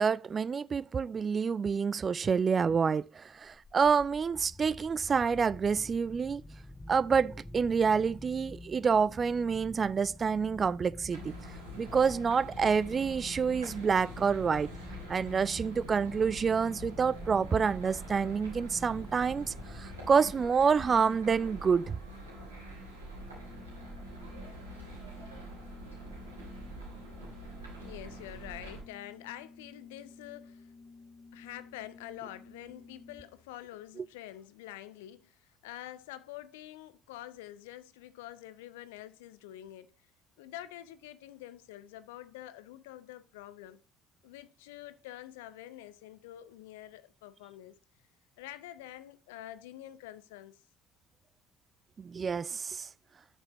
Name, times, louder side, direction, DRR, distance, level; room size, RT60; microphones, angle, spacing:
voice 1, 0.0-6.4 6.9-11.3 11.8-14.7 15.1-22.0 34.0-34.1 52.0-52.9, right 6 dB, 30° right, 0.4 m, -28 dB
sound 1, 3.3-20.7, left 2 dB, 15° left, 0.7 m, -48 dB
sound 2, 11.1-28.8, equal, 80° right, 3.2 m, -45 dB
Organ, 23.3-33.5, left 4 dB, 35° left, 1.9 m, -54 dB
voice 2, 27.8-30.7 31.3-39.9 40.4-43.8 44.2-47.8 48.4-50.6, left 13 dB, 65° left, 0.7 m, -47 dB
8.7 x 7.0 x 2.9 m
figure-of-eight pair, 55°, 0 cm